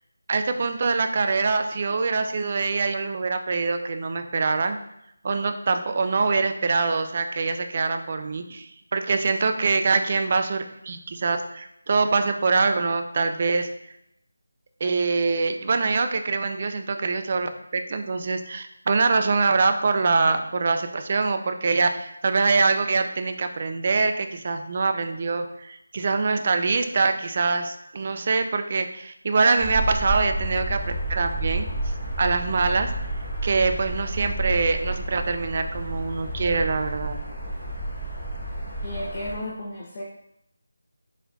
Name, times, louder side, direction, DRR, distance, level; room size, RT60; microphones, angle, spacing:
voice 1, 0.3-4.8 5.2-13.7 14.8-30.8 31.1-31.7 32.2-32.9 33.4-37.2, right 4 dB, 35° right, 7 dB, 0.3 m, -24 dB
sound 1, 29.6-39.4, right 1 dB, ahead, 1.3 m, -30 dB
voice 2, 38.8-40.0, left 1 dB, 30° left, -4 dB, 0.5 m, -33 dB
4.1 x 3.9 x 2.2 m, 0.78 s
figure-of-eight pair, 170°, 0 cm